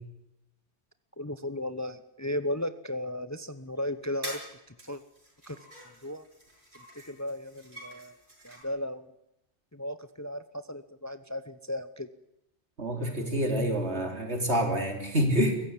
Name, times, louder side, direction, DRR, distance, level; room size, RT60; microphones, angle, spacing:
voice 1, 1.2-4.5 4.8-5.0 5.5-5.6 6.0-6.2 7.1-8.2 8.4-9.1 9.7-12.1, left 1 dB, 15° left, 11 dB, 0.8 m, -35 dB
sound 1, 3.6-3.7 4.2-4.5 4.8-8.6, right 1 dB, 45° right, 7.4 m, -46 dB
voice 2, 12.8-15.6, equal, 70° right, 3 dB, 3.9 m, -27 dB
23.5 x 15.0 x 9.9 m, 0.86 s
omnidirectional pair, 1.2 m